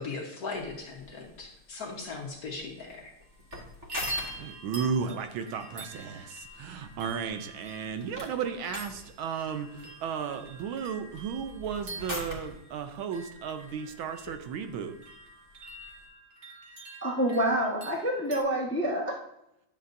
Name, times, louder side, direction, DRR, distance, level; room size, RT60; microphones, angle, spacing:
voice 1, 0.0-3.1, left 4 dB, 55° left, 1 dB, 1.3 m, -38 dB
sound 1, 0.5-16.1, left 1 dB, 10° right, 1.3 m, -46 dB
sound 2, 3.2-3.6 3.9-18.4, right 1 dB, 40° right, 1.2 m, -45 dB
voice 2, 4.4-15.0, right 6 dB, 75° right, 8 dB, 1.4 m, -34 dB
voice 3, 17.0-19.0, right 1 dB, 10° left, -1 dB, 0.6 m, -27 dB
10.5 x 6.9 x 2.6 m, 0.80 s
omnidirectional pair, 2.4 m